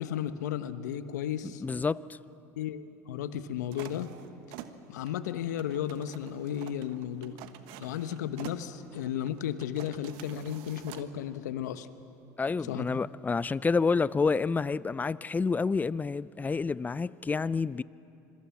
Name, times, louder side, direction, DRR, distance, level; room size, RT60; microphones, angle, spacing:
voice 1, 0.0-1.6 2.6-4.1 4.9-7.4 7.8-11.9 12.6-13.0, left 10 dB, 80° left, 1.1 m, -34 dB
voice 2, 1.6-2.2 12.4-17.8, left 4 dB, 20° left, 0.5 m, -29 dB
sound 1, 3.7-11.1, right 11 dB, 65° right, 1.4 m, -48 dB
26.5 x 23.0 x 7.2 m
hypercardioid pair, 85°, 9 cm